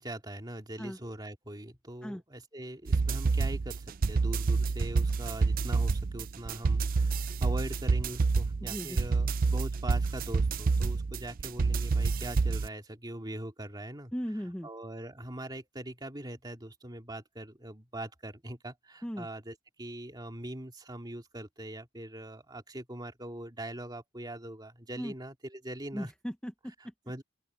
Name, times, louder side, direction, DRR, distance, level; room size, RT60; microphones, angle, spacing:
voice 1, 0.0-14.1 14.6-26.1 26.8-27.2, right 1 dB, 20° right, 2.5 m, -42 dB
sound 1, 2.9-12.7, right 4 dB, 45° right, 0.4 m, -28 dB
voice 2, 8.6-9.0 14.1-14.7 19.0-19.3 25.0-25.1 25.9-26.9, equal, 5° left, 0.8 m, -37 dB
open air
head